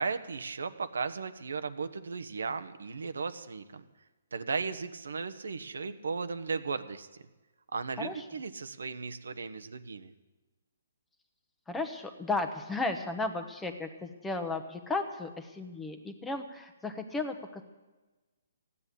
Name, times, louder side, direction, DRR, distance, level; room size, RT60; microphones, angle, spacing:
voice 1, 0.0-3.9 4.3-7.1 7.7-10.1, right 4 dB, 90° right, 10 dB, 1.1 m, -36 dB
voice 2, 11.7-17.6, left 3 dB, 5° left, 7 dB, 1.0 m, -34 dB
15.5 x 9.8 x 8.4 m, 1.2 s
hypercardioid pair, 160°, 0 cm